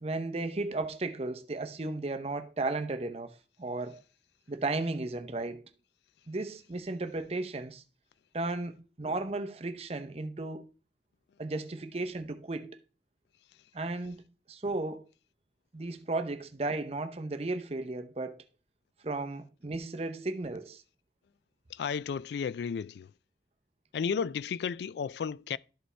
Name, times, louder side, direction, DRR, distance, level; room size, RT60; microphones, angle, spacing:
voice 1, 0.0-4.0 4.5-5.6 6.3-7.8 8.3-10.7 11.4-12.8 13.7-14.2 14.5-15.1 15.7-18.5 19.0-20.8, right 2 dB, 35° right, 0.6 m, -35 dB
voice 2, 21.7-23.1 23.9-25.6, left 6 dB, 70° left, 0.3 m, -33 dB
12.5 x 5.2 x 3.3 m
head